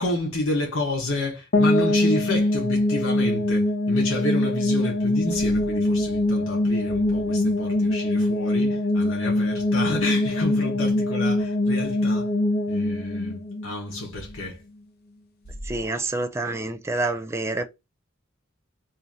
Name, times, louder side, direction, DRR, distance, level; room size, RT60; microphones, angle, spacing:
voice 1, 0.0-12.3 12.7-14.6, left 2 dB, 75° left, 1.1 m, -30 dB
sound 1, 1.5-14.4, left 1 dB, 50° left, 0.6 m, -23 dB
voice 2, 15.6-17.7, right 2 dB, 15° right, 0.4 m, -27 dB
2.8 x 2.7 x 3.7 m
head